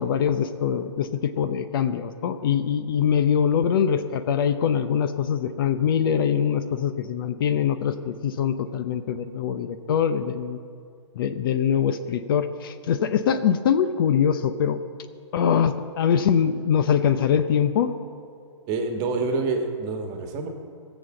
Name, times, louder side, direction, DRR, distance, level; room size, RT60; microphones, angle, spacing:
voice 1, 0.0-10.6 11.2-14.8 15.3-17.9, left 8 dB, 45° left, 11 dB, 0.7 m, -23 dB
voice 2, 18.7-20.5, right 3 dB, 25° right, 4 dB, 1.5 m, -27 dB
18.0 x 7.2 x 7.7 m, 2.3 s
hypercardioid pair, 145°, 16 cm